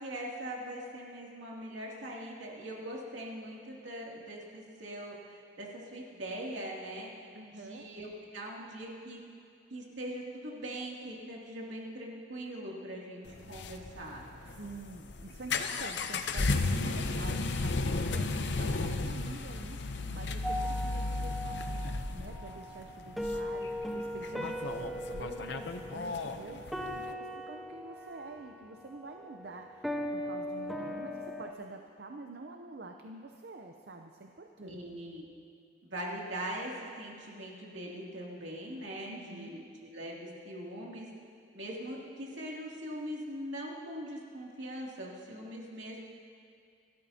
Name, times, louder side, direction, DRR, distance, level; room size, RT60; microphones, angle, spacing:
voice 1, 0.0-7.1 7.5-9.2 9.7-14.2 24.3-24.7 34.6-35.2 35.8-41.1 41.5-46.0, right 1 dB, 75° right, -3 dB, 2.7 m, -41 dB
voice 2, 7.3-7.9 14.5-34.8 39.1-39.6, right 2 dB, 55° right, 3 dB, 0.6 m, -47 dB
sound 1, 13.3-27.1, left 3 dB, 60° left, 0.7 m, -34 dB
sound 2, 20.4-31.5, equal, ahead, 0.6 m, -39 dB
27.5 x 13.0 x 2.8 m, 2.3 s
head